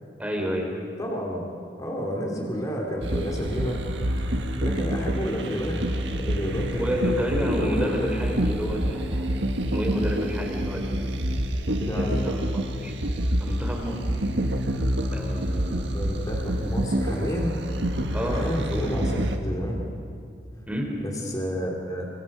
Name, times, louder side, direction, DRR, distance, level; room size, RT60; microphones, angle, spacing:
voice 1, 0.2-0.8 6.7-9.3 9.7-11.2 11.9-12.9 13.4-14.0 15.1-15.9 18.1-18.9 20.7-20.9, equal, 10° right, 0 dB, 4.0 m, -30 dB
voice 2, 1.0-1.4 1.8-3.8 4.6-5.8 6.1-6.8 7.5-8.1 11.8-12.3 15.9-17.6 18.2-19.8 21.0-22.1, equal, 20° left, -1 dB, 2.5 m, -30 dB
sound 1, 3.0-19.4, right 1 dB, 70° right, 1.7 m, -27 dB
28.0 x 24.0 x 5.3 m, 2.4 s
head